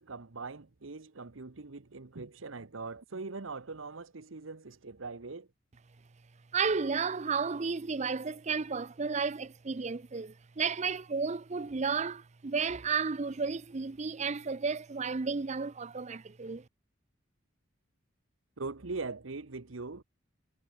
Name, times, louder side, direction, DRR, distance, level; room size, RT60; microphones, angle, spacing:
voice 1, 0.0-5.5 18.6-20.0, right 3 dB, 80° right, 1.1 m, -41 dB
voice 2, 6.5-16.6, right 5 dB, 35° right, 0.5 m, -33 dB
head